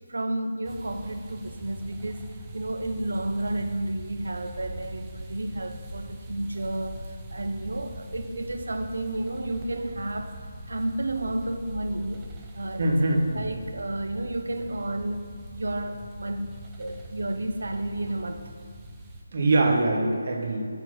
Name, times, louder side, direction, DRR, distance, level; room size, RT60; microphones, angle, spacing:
voice 1, 0.1-10.4 10.7-12.3 12.5-12.9 13.3-18.5, right 1 dB, 80° right, 7 dB, 0.7 m, -32 dB
sound 1, 0.6-19.2, right 1 dB, 10° right, 0.5 m, -42 dB
voice 2, 12.8-13.4 19.3-20.7, right 2 dB, 35° right, 0 dB, 1.2 m, -23 dB
7.0 x 4.0 x 6.1 m, 2.2 s
figure-of-eight pair, 175°, 0 cm